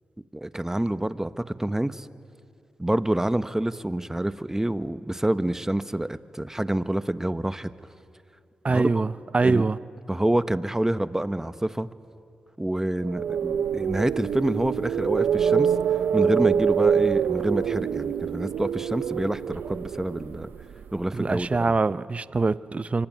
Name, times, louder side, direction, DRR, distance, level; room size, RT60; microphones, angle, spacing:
voice 1, 0.3-2.1 2.8-7.7 8.7-9.0 9.4-9.7 10.1-11.9 12.6-15.7 16.1-20.5 20.9-21.7, right 1 dB, 15° right, 13 dB, 1.2 m, -27 dB
voice 2, 8.6-9.8 21.1-23.1, right 3 dB, 40° right, 16 dB, 0.7 m, -24 dB
sound 1, 13.0-21.1, right 7 dB, 85° right, 0.7 m, -25 dB
24.5 x 24.5 x 9.5 m, 2.4 s
supercardioid pair, 40°, 3 cm